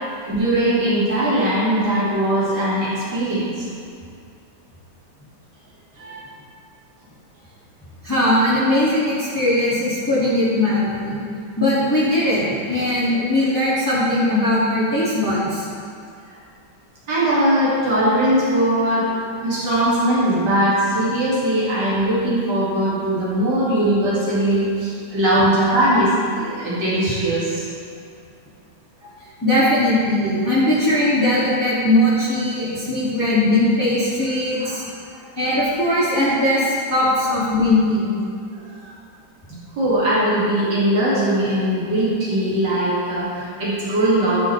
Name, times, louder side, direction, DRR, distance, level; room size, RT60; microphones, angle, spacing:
voice 1, 0.3-3.6 6.0-6.2 17.1-19.1 19.4-27.9 34.6-34.8 35.1-35.2 38.5-38.7 39.8-44.4, right 1 dB, 70° right, -9 dB, 3.1 m, -20 dB
voice 2, 8.0-11.2 11.6-15.7 24.1-24.2 29.4-34.9 35.4-38.1, left 1 dB, 10° left, -10 dB, 2.4 m, -19 dB
17.0 x 6.1 x 3.4 m, 2.3 s
omnidirectional pair, 1.9 m